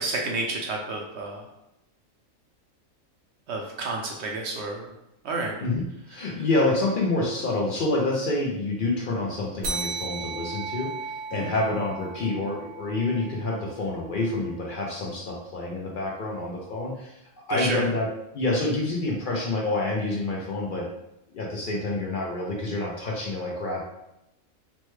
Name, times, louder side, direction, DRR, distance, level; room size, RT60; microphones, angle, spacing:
voice 1, 0.0-1.4 3.5-4.9 5.2-5.6 11.3-11.5 17.5-17.8, right 3 dB, 65° right, 0 dB, 0.7 m, -30 dB
voice 2, 5.6-17.2 17.5-18.1 18.3-20.9 21.3-23.8, left 2 dB, 60° left, -2 dB, 0.5 m, -27 dB
sound 1, 9.6-14.6, right 3 dB, 85° right, 1.1 m, -36 dB
3.1 x 2.2 x 3.1 m, 0.86 s
omnidirectional pair, 1.4 m